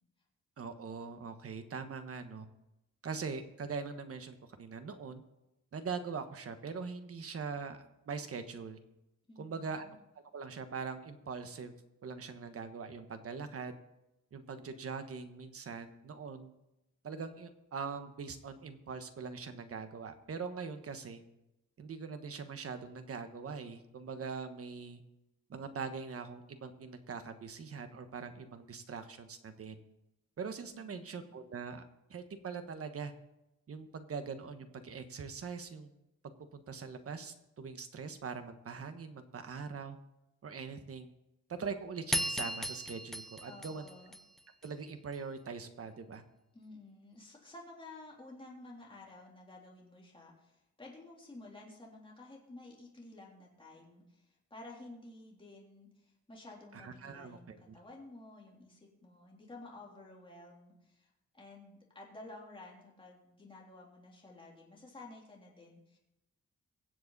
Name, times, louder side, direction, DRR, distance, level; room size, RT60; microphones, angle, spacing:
voice 1, 0.6-2.5 3.0-5.2 5.7-8.8 9.4-9.9 10.3-11.7 12.0-13.7 14.3-16.5 17.0-21.2 21.8-25.0 25.5-29.8 30.4-31.8 32.1-33.1 33.7-35.9 36.5-40.0 40.4-41.1 41.5-43.9 44.6-46.2 56.7-57.6, right 5 dB, 50° right, 8 dB, 1.3 m, -42 dB
voice 2, 9.3-10.0 30.7-31.3 43.5-44.2 46.5-66.0, left 2 dB, 15° left, -3 dB, 3.4 m, -53 dB
sound 1, 42.1-44.7, equal, ahead, 0.7 m, -36 dB
23.0 x 7.8 x 4.1 m, 0.92 s
wide cardioid pair, 135°, 29 cm